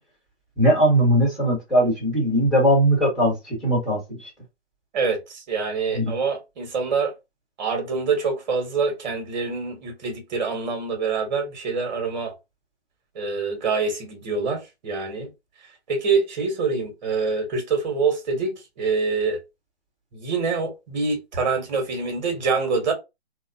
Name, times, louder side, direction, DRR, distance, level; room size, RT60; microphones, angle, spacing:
voice 1, 0.6-4.3 5.9-6.1, equal, ahead, 1.6 m, -20 dB
voice 2, 4.9-7.1 7.6-12.3 13.1-15.3 15.9-19.4 20.1-22.9, right 4 dB, 40° right, 1.5 m, -25 dB
3.4 x 2.3 x 2.7 m
hypercardioid pair, 145°, 34 cm